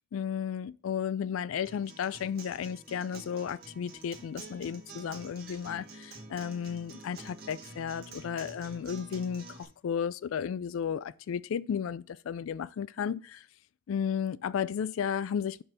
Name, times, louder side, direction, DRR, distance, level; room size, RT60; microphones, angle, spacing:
voice 1, 0.1-13.5 13.9-15.6, left 7 dB, 80° left, 0.3 m, -34 dB
Acoustic guitar, 1.6-9.6, right 3 dB, 50° right, 1.6 m, -48 dB
5.5 x 4.4 x 6.2 m
head